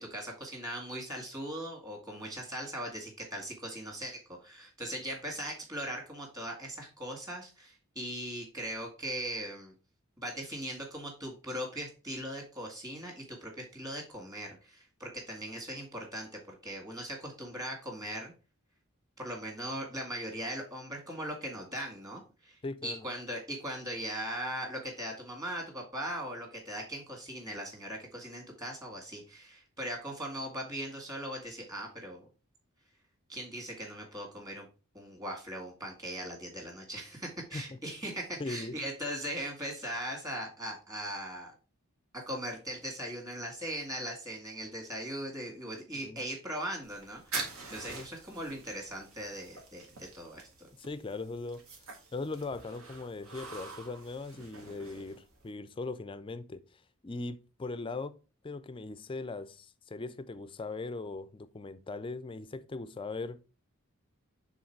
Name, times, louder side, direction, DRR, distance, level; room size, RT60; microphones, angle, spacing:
voice 1, 0.0-9.7 10.2-18.3 19.2-32.2 33.3-34.7 34.9-41.5 42.3-50.7, right 1 dB, 15° right, 2.0 m, -39 dB
voice 2, 22.6-23.1 37.5-37.8 38.4-38.8 46.0-46.2 47.9-48.0 50.8-51.6 52.1-58.2 58.4-63.4, left 3 dB, 25° left, 0.4 m, -39 dB
sound 1, 46.8-55.5, right 4 dB, 75° right, 1.7 m, -45 dB
6.3 x 3.7 x 4.5 m
head